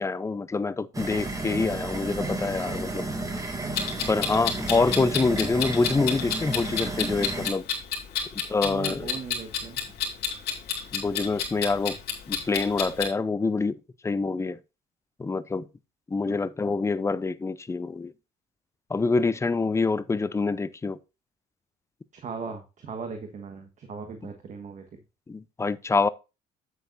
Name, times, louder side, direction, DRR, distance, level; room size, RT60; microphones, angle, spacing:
voice 1, 0.0-3.1 4.1-7.7 8.3-9.1 10.9-12.0 12.3-13.8 14.0-14.6 15.2-15.7 16.1-18.1 18.9-21.0 25.3-26.1, left 4 dB, 15° left, 0.6 m, -26 dB
sound 1, 0.9-7.5, right 2 dB, 20° right, 1.9 m, -32 dB
Clock, 3.7-13.1, left 7 dB, 70° left, 3.0 m, -30 dB
voice 2, 8.6-9.8 16.3-16.4 22.1-25.0, right 5 dB, 45° right, 1.5 m, -38 dB
9.0 x 8.0 x 2.6 m
cardioid pair, 110°, 17 cm